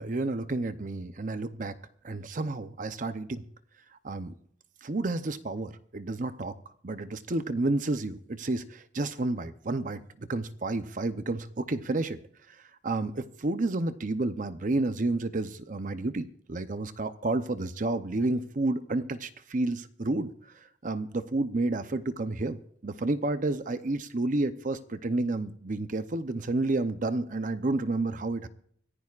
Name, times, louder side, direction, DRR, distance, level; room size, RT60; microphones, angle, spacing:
voice 1, 0.0-1.7 2.0-3.4 4.0-4.3 4.8-6.5 6.8-12.2 12.5-28.5, right 2 dB, 45° right, 11 dB, 0.7 m, -30 dB
25.0 x 15.0 x 2.5 m, 0.64 s
head